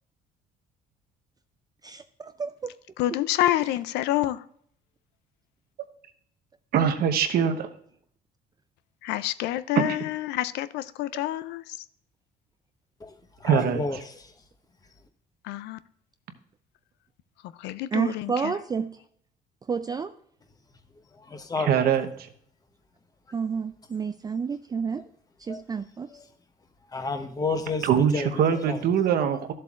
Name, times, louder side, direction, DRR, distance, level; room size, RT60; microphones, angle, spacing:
voice 1, 1.8-2.7 17.9-18.9 19.7-20.1 23.3-25.0 25.4-26.1, right 5 dB, 25° right, 0.4 m, -30 dB
voice 2, 3.0-4.4 9.0-11.8 15.4-15.8 17.4-18.5, left 14 dB, 85° left, 0.4 m, -28 dB
voice 3, 6.7-7.7 9.8-10.0 13.4-13.8 21.6-22.1 27.8-29.5, right 8 dB, 65° right, 1.0 m, -23 dB
voice 4, 13.4-14.1 21.2-21.9 25.5-25.6 26.1-26.2 26.9-28.8, left 3 dB, 20° left, 1.0 m, -31 dB
13.0 x 7.6 x 2.4 m
cardioid pair, 110°, 17 cm